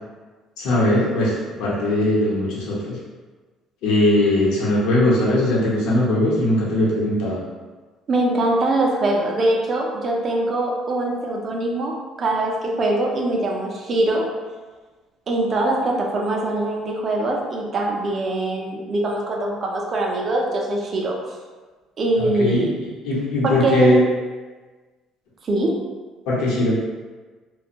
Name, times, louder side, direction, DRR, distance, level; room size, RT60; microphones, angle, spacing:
voice 1, 0.6-3.0 3.8-7.4 22.2-22.6 23.0-24.0 26.3-26.8, left 1 dB, 85° left, -6 dB, 0.8 m, -20 dB
voice 2, 8.1-11.9 12.2-14.3 15.3-21.2 22.0-22.7 23.4-23.9 25.4-25.8, right 2 dB, 30° right, 0 dB, 0.4 m, -22 dB
2.5 x 2.2 x 2.8 m, 1.3 s
cardioid pair, 175°, 0 cm